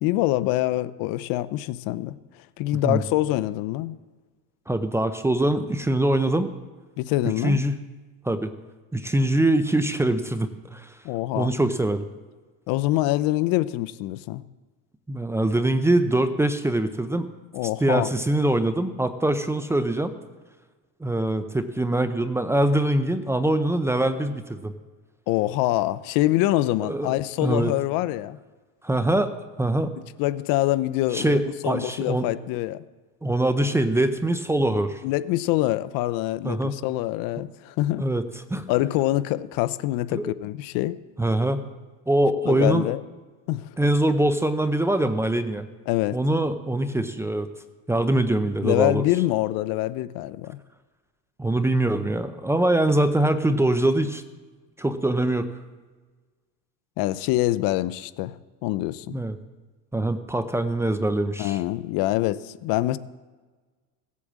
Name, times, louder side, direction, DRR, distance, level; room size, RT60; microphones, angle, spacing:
voice 1, 0.0-4.0 7.0-7.6 11.0-11.5 12.7-14.4 17.5-18.1 25.3-28.4 30.2-32.8 35.0-38.0 38.7-41.0 42.5-43.0 43.5-43.8 45.9-46.2 48.6-50.6 57.0-58.4 58.6-59.2 61.4-63.0, left 16 dB, 60° left, 16 dB, 0.7 m, -25 dB
voice 2, 4.7-6.5 7.4-7.8 8.2-8.5 8.9-11.0 11.4-12.0 15.1-17.3 17.8-20.1 21.0-24.7 26.9-27.7 28.8-29.3 29.6-29.9 31.1-32.3 33.2-35.0 36.4-36.7 38.0-38.2 38.5-38.7 40.1-40.3 41.2-41.6 42.1-42.9 43.8-45.7 46.1-47.5 47.9-49.0 51.4-54.2 54.8-55.5 59.1-59.4 59.9-61.6, right 1 dB, 5° right, 10 dB, 0.6 m, -23 dB
16.5 x 8.4 x 7.4 m, 1.3 s
supercardioid pair, 130°, 39 cm